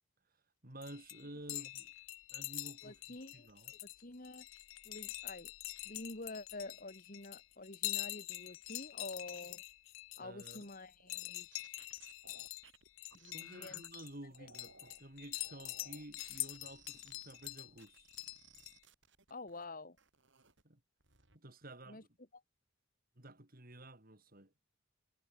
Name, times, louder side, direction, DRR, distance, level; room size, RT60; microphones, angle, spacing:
voice 1, 0.6-1.9 2.3-3.7 10.2-10.7 13.3-18.1 20.6-20.8 21.3-22.1 23.2-24.5, right 1 dB, 45° right, 3.9 m, -52 dB
sound 1, 0.8-18.7, left 19 dB, 70° left, 0.5 m, -45 dB
voice 2, 2.8-4.5 4.9-5.5 5.9-9.6 10.2-11.8 13.1-13.8 19.3-20.0 21.9-22.0 22.3-22.4, left 2 dB, 40° left, 2.0 m, -48 dB
sound 2, 11.0-13.9 14.3-15.0 15.4-19.6 20.0-20.6 21.0-21.4, right 5 dB, 60° right, 6.2 m, -62 dB
head